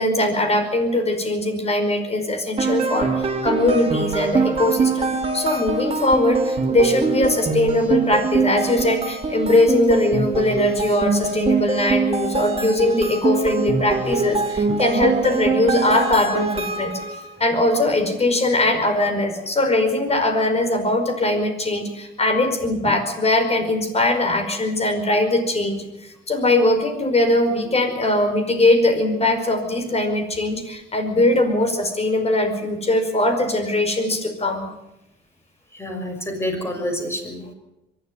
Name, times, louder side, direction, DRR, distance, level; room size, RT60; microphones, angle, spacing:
voice 1, 0.0-17.0 17.4-34.7, left 1 dB, 30° left, 7 dB, 5.0 m, -21 dB
sound 1, 2.6-17.3, right 4 dB, 30° right, 3.1 m, -23 dB
voice 2, 35.7-37.5, equal, 10° left, 4 dB, 6.2 m, -28 dB
23.0 x 12.5 x 9.4 m, 0.93 s
cardioid pair, 90°, 20 cm